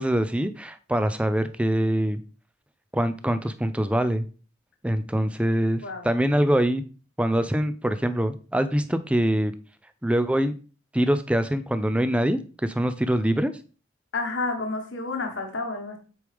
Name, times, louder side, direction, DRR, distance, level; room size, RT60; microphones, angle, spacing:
voice 1, 0.0-2.2 2.9-4.3 4.8-6.8 7.2-9.5 10.0-10.5 10.9-13.5, right 1 dB, 5° right, 10 dB, 0.5 m, -24 dB
voice 2, 14.1-16.0, left 3 dB, 70° left, 3 dB, 1.4 m, -30 dB
7.8 x 4.9 x 3.5 m, 0.36 s
head